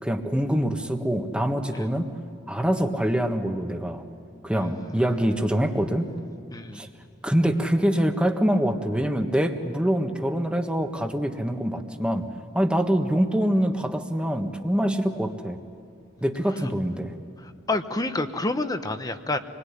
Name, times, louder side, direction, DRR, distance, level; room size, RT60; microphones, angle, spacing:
voice 1, 0.0-2.1 2.5-4.0 4.4-6.1 6.7-6.9 7.2-12.2 12.5-15.6 16.2-17.1, equal, 5° right, 5 dB, 1.5 m, -24 dB
voice 2, 6.5-6.9 17.4-19.4, left 2 dB, 20° left, 9 dB, 1.0 m, -29 dB
26.5 x 21.5 x 9.9 m, 2.4 s
head